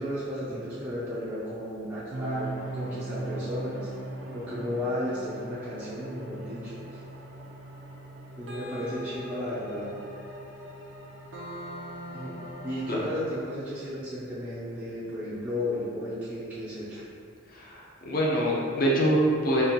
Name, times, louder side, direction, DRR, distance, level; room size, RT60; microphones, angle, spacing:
voice 1, 0.0-3.9 4.3-7.0 8.4-10.0 12.1-12.3 12.6-17.0, left 1 dB, 5° right, -11 dB, 0.5 m, -34 dB
sound 1, 2.1-13.1, right 1 dB, 60° right, 0.6 m, -39 dB
voice 2, 17.5-19.6, right 1 dB, 40° left, -4 dB, 0.6 m, -25 dB
4.1 x 2.9 x 2.8 m, 2.4 s
head